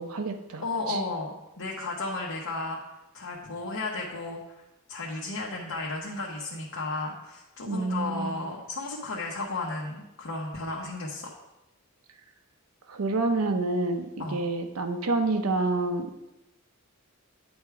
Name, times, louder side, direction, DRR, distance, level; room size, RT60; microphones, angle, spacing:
voice 1, 0.0-0.6 0.9-1.0 7.7-8.4 12.9-16.1, right 2 dB, 80° right, 7 dB, 0.7 m, -28 dB
voice 2, 0.6-2.8 3.1-4.6 4.9-11.3 14.2-14.4, left 2 dB, 70° left, -3 dB, 1.0 m, -34 dB
9.5 x 3.5 x 4.6 m, 0.96 s
head